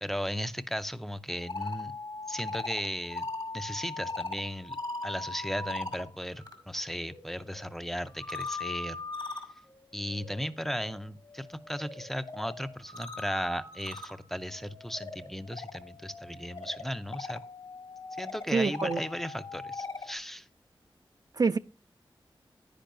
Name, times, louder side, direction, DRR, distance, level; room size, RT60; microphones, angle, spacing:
voice 1, 0.0-1.9 2.3-3.3 3.5-4.8 5.0-9.0 9.2-9.4 9.9-17.4 18.2-20.5, equal, 5° left, 0.5 m, -36 dB
sound 1, 1.3-6.5 6.9-20.1, left 3 dB, 60° left, 2.3 m, -41 dB
voice 2, 18.5-19.0 21.3-21.6, right 4 dB, 45° right, 0.4 m, -26 dB
10.0 x 9.8 x 2.6 m
wide cardioid pair, 65°, 9 cm